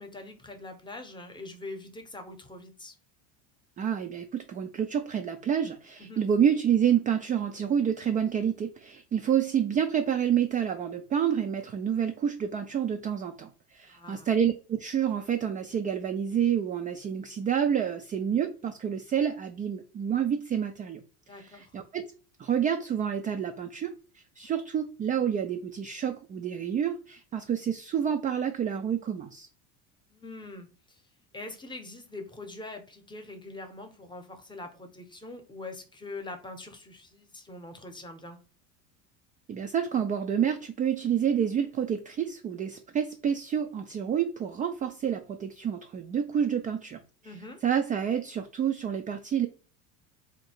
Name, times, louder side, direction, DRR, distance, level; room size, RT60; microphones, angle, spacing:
voice 1, 0.0-2.9 6.0-6.2 13.9-14.3 21.3-21.7 30.1-31.0 31.3-38.4 47.2-47.6, left 2 dB, 10° left, 0.8 m, -43 dB
voice 2, 3.8-21.0 21.4-22.1 22.4-29.5 39.5-47.0 47.6-49.5, right 8 dB, 25° right, 0.3 m, -28 dB
2.9 x 2.6 x 4.3 m
supercardioid pair, 115°, 37 cm